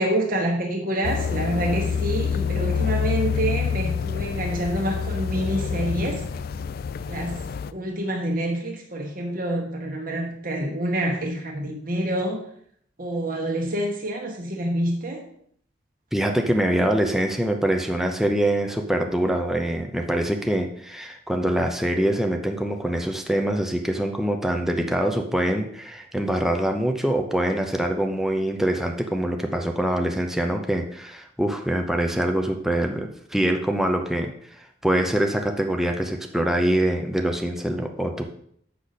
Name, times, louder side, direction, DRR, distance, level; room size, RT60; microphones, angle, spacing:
voice 1, 0.0-6.2 7.0-7.4 7.7-12.4 13.0-15.2, right 1 dB, 45° right, 0 dB, 1.3 m, -27 dB
sound 1, 1.0-7.7, left 7 dB, 50° left, 0.3 m, -27 dB
voice 2, 16.1-34.3 34.8-38.3, right 1 dB, ahead, 3 dB, 0.6 m, -24 dB
8.2 x 6.5 x 4.1 m, 0.65 s
head